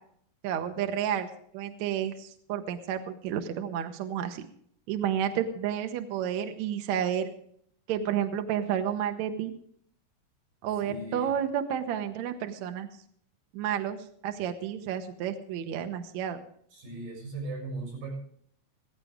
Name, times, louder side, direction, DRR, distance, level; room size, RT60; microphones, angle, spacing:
voice 1, 0.4-1.3 1.5-4.5 4.9-7.3 7.9-9.5 10.6-12.9 13.5-14.0 14.2-16.4, right 9 dB, 65° right, 7 dB, 2.0 m, -31 dB
voice 2, 10.8-11.4 16.7-18.2, right 2 dB, 80° right, 0 dB, 8.6 m, -38 dB
16.5 x 16.0 x 3.6 m, 0.63 s
omnidirectional pair, 4.1 m